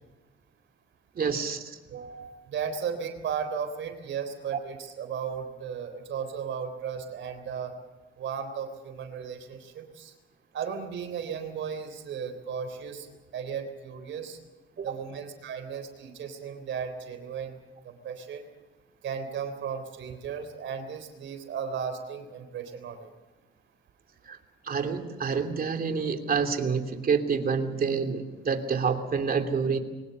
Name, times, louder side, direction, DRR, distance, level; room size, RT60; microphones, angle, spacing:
voice 1, 1.1-1.8 14.8-14.9 24.3-24.4 24.7-29.8, right 5 dB, 50° right, 5 dB, 2.9 m, -28 dB
voice 2, 1.9-7.7 8.2-10.1 10.5-13.1 13.3-14.4 14.8-17.6 17.8-18.5 19.0-23.1, right 7 dB, 70° right, 8 dB, 3.7 m, -35 dB
23.5 x 19.5 x 6.8 m, 1.2 s
cardioid pair, 90°, 20 cm